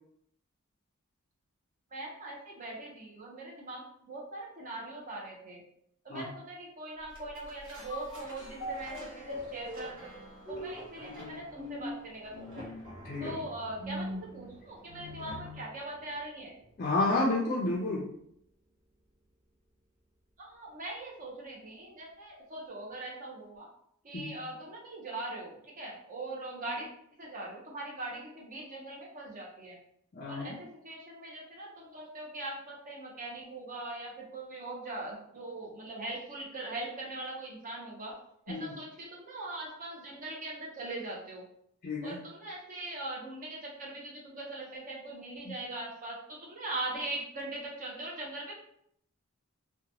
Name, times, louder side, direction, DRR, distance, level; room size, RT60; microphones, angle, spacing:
voice 1, 1.9-5.6 6.1-12.7 13.2-14.0 14.3-16.5 20.4-23.7 24.0-26.9 27.2-29.8 30.3-38.1 38.5-41.4 42.0-48.6, right 2 dB, 40° right, -2 dB, 0.7 m, -41 dB
sound 1, 7.1-15.7 16.1-16.2, left 1 dB, 65° right, 1.1 m, -42 dB
voice 2, 13.0-13.4 16.8-18.0 24.1-24.4 30.1-30.6 38.5-38.8 41.8-42.2 45.4-45.6, left 2 dB, 40° left, -4 dB, 0.4 m, -31 dB
2.8 x 2.2 x 2.7 m, 0.71 s
head